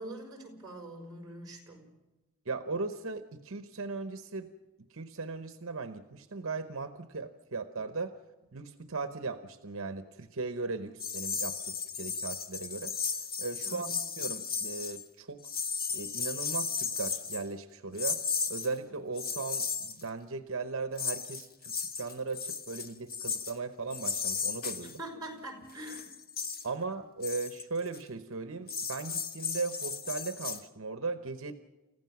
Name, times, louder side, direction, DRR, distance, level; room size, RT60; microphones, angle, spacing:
voice 1, 0.0-1.9 13.6-13.9 24.8-26.1, right 1 dB, 20° right, 1 dB, 4.9 m, -44 dB
voice 2, 2.5-4.5 4.9-8.1 8.5-12.9 13.4-13.9 14.2-15.5 15.9-18.2 18.5-25.0 26.6-31.5, right 4 dB, 65° right, 9 dB, 0.9 m, -38 dB
sound 1, 11.0-15.0 15.4-17.4 18.0-18.7 19.2-20.0 21.0-23.5 23.9-25.0 25.6-26.6 27.2-28.0 28.7-30.6, left 5 dB, 40° left, 1.3 m, -35 dB
sound 2, 15.8-17.6, equal, 20° left, 4.3 m, -63 dB
29.5 x 15.5 x 6.0 m, 1.1 s
head